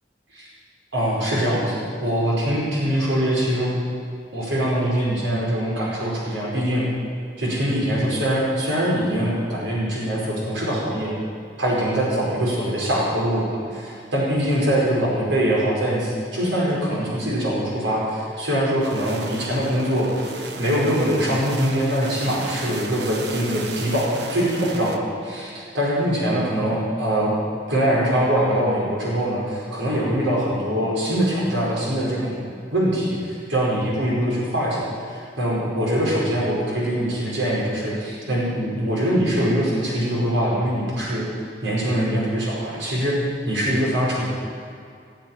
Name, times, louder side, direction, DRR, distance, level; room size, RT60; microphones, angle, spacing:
voice 1, 0.9-3.7 4.3-6.8 7.4-11.1 11.6-20.1 20.6-27.3 27.7-32.4 32.7-41.2 41.6-43.2 43.4-44.2, equal, 85° right, -5 dB, 5.1 m, -23 dB
sound 1, 18.8-25.0, right 3 dB, 65° right, 1.2 m, -34 dB
19.0 x 8.2 x 9.0 m, 2.3 s
head